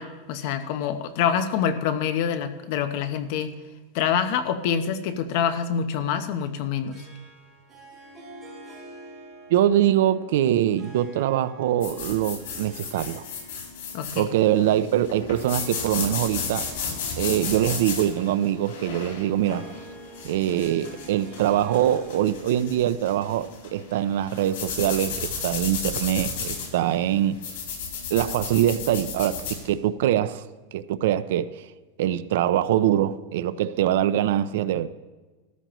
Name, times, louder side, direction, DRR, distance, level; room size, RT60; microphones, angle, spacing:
voice 1, 0.0-3.5 3.9-7.0 13.9-14.3, left 8 dB, 45° left, 0.8 m, -26 dB
Harp, 6.9-23.6, right 1 dB, 15° right, 4.2 m, -47 dB
voice 2, 9.5-13.2 14.1-16.7 17.2-19.7 20.2-27.4 28.1-30.5 30.7-31.7 32.0-34.9, right 11 dB, 65° right, 0.5 m, -23 dB
sound 1, 11.8-29.6, left 5 dB, 85° left, 4.6 m, -34 dB
14.5 x 13.5 x 3.0 m
supercardioid pair, 175°, 0 cm